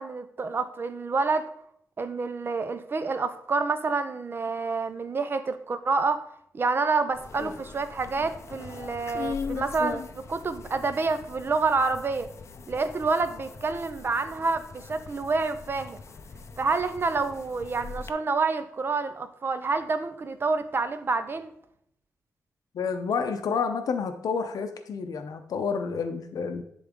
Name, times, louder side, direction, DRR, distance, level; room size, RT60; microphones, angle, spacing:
voice 1, 0.0-1.5 2.0-6.2 6.5-12.3 12.7-16.0 16.6-21.5, right 4 dB, 35° right, 11 dB, 0.6 m, -28 dB
sound 1, 7.1-18.1, left 5 dB, 50° left, 0.5 m, -40 dB
voice 2, 22.7-26.6, left 5 dB, 90° left, 7 dB, 0.6 m, -29 dB
10.5 x 4.0 x 3.6 m, 0.70 s
wide cardioid pair, 155°, 6 cm